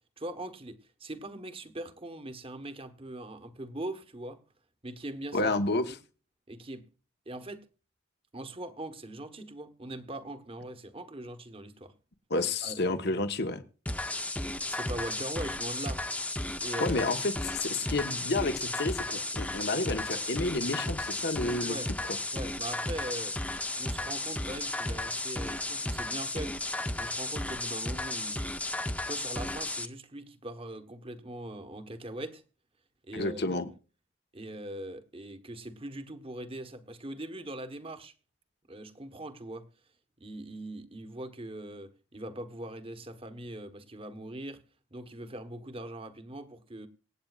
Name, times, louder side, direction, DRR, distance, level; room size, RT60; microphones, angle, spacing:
voice 1, 0.2-4.4 4.8-5.5 6.5-6.9 7.3-7.7 8.3-11.9 12.6-12.8 14.7-16.1 16.6-17.0 21.6-21.9 22.3-23.4 23.8-28.5 29.0-32.4 33.0-33.6 34.3-38.1 38.7-39.7 40.2-44.6 44.9-46.9, right 1 dB, 25° right, 1.2 m, -41 dB
voice 2, 5.3-5.8 12.3-13.6 16.8-21.7 33.1-33.7, left 2 dB, 55° left, 1.2 m, -30 dB
sound 1, 13.9-29.9, left 2 dB, 5° left, 0.7 m, -34 dB
26.0 x 8.7 x 2.4 m
head